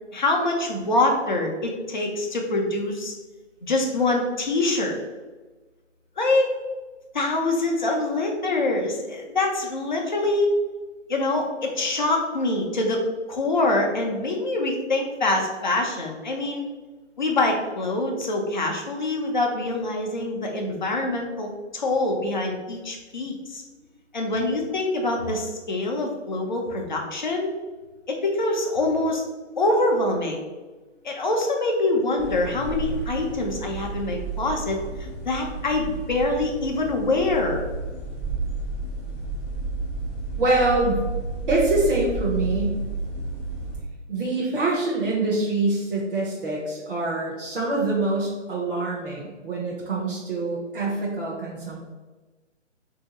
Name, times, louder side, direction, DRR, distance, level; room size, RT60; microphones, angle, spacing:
voice 1, 0.1-3.1 3.6-5.0 6.2-6.5 7.1-10.5 11.1-16.6 17.2-23.6 24.1-27.5 28.1-29.2 29.6-30.4 31.0-34.8 35.2-37.7, left 2 dB, 40° left, 1 dB, 0.6 m, -25 dB
sound 1, 32.2-43.8, right 3 dB, 10° right, 0.6 m, -31 dB
voice 2, 40.4-41.0 41.5-42.8 44.1-51.8, right 2 dB, 45° right, -5 dB, 0.8 m, -25 dB
3.0 x 2.7 x 4.1 m, 1.2 s
hypercardioid pair, 175°, 37 cm